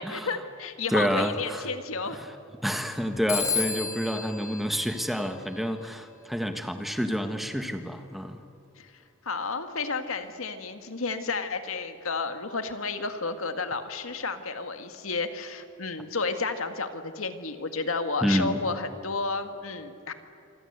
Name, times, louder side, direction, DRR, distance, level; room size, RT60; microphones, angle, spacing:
voice 1, 0.0-2.2 8.8-8.9 9.2-20.1, left 4 dB, 85° left, 7 dB, 2.0 m, -32 dB
voice 2, 0.9-1.7 2.1-2.3 2.6-8.4 18.2-18.6, equal, ahead, 6 dB, 1.5 m, -28 dB
Telephone, 3.3-5.8, left 5 dB, 15° left, 2.5 m, -32 dB
26.5 x 25.0 x 8.2 m, 2.5 s
head